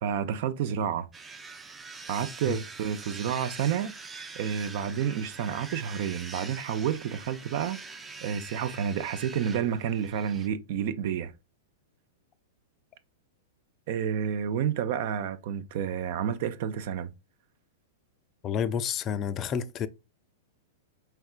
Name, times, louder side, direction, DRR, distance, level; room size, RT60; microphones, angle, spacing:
voice 1, 0.0-1.1 2.1-3.9 4.3-7.8 8.2-11.3 13.9-17.1, right 8 dB, 60° right, 0.6 m, -30 dB
sound 1, 1.1-10.5, right 4 dB, 15° right, 0.5 m, -44 dB
voice 2, 18.4-19.9, left 8 dB, 30° left, 0.4 m, -30 dB
4.5 x 3.5 x 2.4 m
hypercardioid pair, 120°, 0 cm